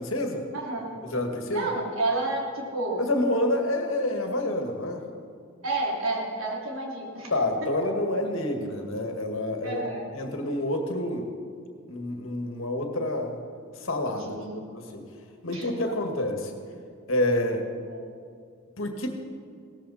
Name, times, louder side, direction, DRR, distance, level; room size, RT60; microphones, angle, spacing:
voice 1, 0.0-0.5 1.0-1.7 3.0-5.0 7.3-9.9 10.1-11.3 11.9-13.4 13.8-14.4 14.7-15.0 15.4-16.6 17.1-17.7 18.8-19.1, left 1 dB, 75° left, 4 dB, 1.9 m, -28 dB
voice 2, 0.5-1.1 1.5-3.0 5.6-7.3 7.6-7.9 9.6-10.1 14.3-14.6 15.5-15.7 17.9-18.0, right 2 dB, 85° right, -2 dB, 3.0 m, -30 dB
17.5 x 14.0 x 4.2 m, 2.2 s
head